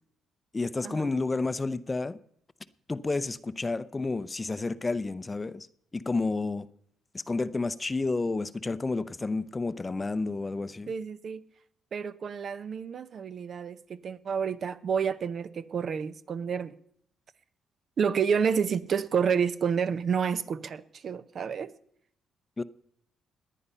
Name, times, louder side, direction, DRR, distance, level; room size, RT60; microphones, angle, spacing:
voice 1, 0.5-2.2 2.9-5.7 5.9-6.7 7.3-10.9 22.6-22.7, left 3 dB, 25° left, 0.6 m, -30 dB
voice 2, 10.9-11.4 11.9-16.8 18.0-21.7, right 6 dB, 55° right, 0.7 m, -29 dB
18.5 x 10.0 x 5.5 m
cardioid pair, 90°, 0 cm